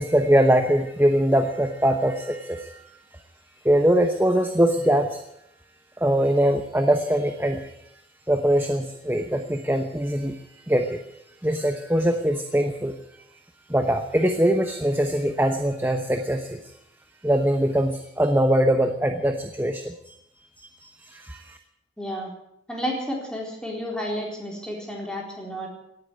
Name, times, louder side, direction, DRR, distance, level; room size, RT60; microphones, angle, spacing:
voice 1, 0.0-2.9 3.6-5.2 6.0-7.7 8.3-11.0 11.4-12.9 13.7-16.6 17.2-20.2 20.6-21.6, right 1 dB, 10° right, 6 dB, 0.9 m, -22 dB
voice 2, 22.0-22.3 22.7-25.7, equal, 5° left, -2 dB, 4.0 m, -31 dB
18.0 x 8.6 x 9.3 m, 0.78 s
head